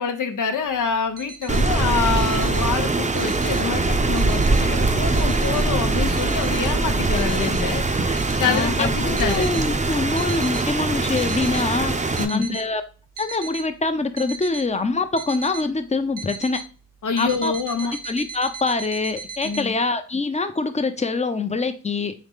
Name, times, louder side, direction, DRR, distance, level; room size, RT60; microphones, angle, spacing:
voice 1, 0.0-9.5 12.2-12.6 17.0-17.9 19.4-19.7, left 6 dB, 75° left, 6 dB, 0.7 m, -26 dB
sound 1, 1.0-1.6 2.1-2.6 3.0-3.7 4.2-4.6 5.2-5.7 6.2-6.6 7.2-7.6 8.2-8.6 9.2-9.6 10.2-10.6 11.0-11.6 12.2-12.6 13.2-13.6 14.2-14.6 15.2-15.7 16.2-16.6 17.2-19.7, right 5 dB, 80° right, 0.5 m, -37 dB
Rain, 1.5-12.2, right 3 dB, 25° right, 0.6 m, -22 dB
voice 2, 8.4-11.9 12.3-12.8 13.2-16.6 17.2-17.5 17.9-22.1, left 3 dB, 20° left, 9 dB, 0.6 m, -25 dB
3.9 x 3.1 x 3.6 m, 0.36 s
cardioid pair, 45°, 31 cm